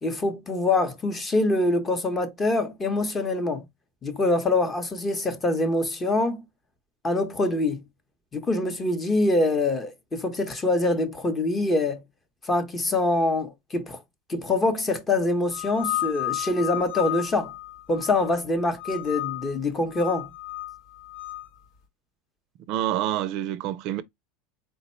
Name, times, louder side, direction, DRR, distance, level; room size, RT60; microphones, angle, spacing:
voice 1, 0.0-3.7 4.0-6.4 7.0-7.8 8.3-12.0 12.4-14.0 14.3-17.5 17.9-20.3, left 2 dB, 15° left, 0.8 m, -25 dB
sound 1, 15.5-18.4 18.8-19.5 19.9-21.5, left 16 dB, 50° left, 1.1 m, -33 dB
voice 2, 22.7-24.0, right 12 dB, 50° right, 0.4 m, -27 dB
4.3 x 2.1 x 4.2 m
supercardioid pair, 145°, 0 cm